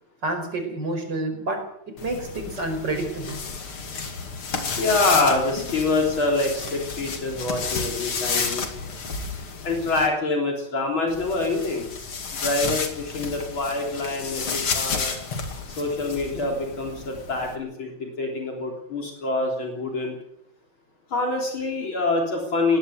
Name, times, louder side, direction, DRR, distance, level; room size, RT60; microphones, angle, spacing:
voice 1, 0.2-3.4 3.9-4.1 8.1-8.2, right 2 dB, 55° right, 5 dB, 5.7 m, -29 dB
sound 1, 2.0-10.1 11.1-17.6, left 5 dB, 90° left, 3.3 m, -31 dB
voice 2, 4.8-8.7 9.6-11.9 12.3-15.1 15.8-20.2 21.1-22.8, left 3 dB, 70° left, 0 dB, 4.3 m, -25 dB
20.0 x 17.5 x 8.1 m, 0.76 s
omnidirectional pair, 2.3 m